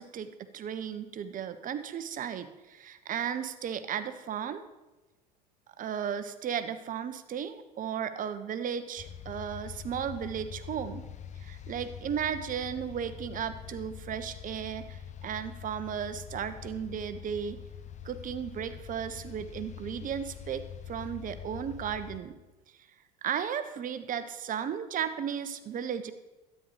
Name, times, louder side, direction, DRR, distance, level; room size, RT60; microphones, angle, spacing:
voice 1, 0.0-4.6 5.8-11.1 11.4-17.6 18.0-22.3 23.2-26.1, right 8 dB, 40° right, 11 dB, 1.1 m, -35 dB
sound 1, 9.0-22.2, left 9 dB, 35° left, 1.1 m, -44 dB
12.5 x 9.7 x 5.2 m, 1.1 s
hypercardioid pair, 75°, 21 cm